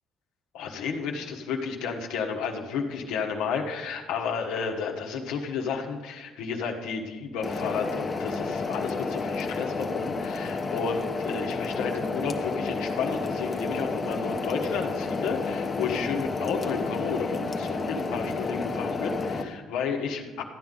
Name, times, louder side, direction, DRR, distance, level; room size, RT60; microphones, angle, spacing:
voice 1, 0.5-20.4, left 5 dB, 80° left, 2 dB, 1.4 m, -32 dB
sound 1, 7.4-19.4, left 3 dB, 30° left, 1.1 m, -30 dB
13.5 x 9.3 x 3.8 m, 1.2 s
supercardioid pair, 70°, 0 cm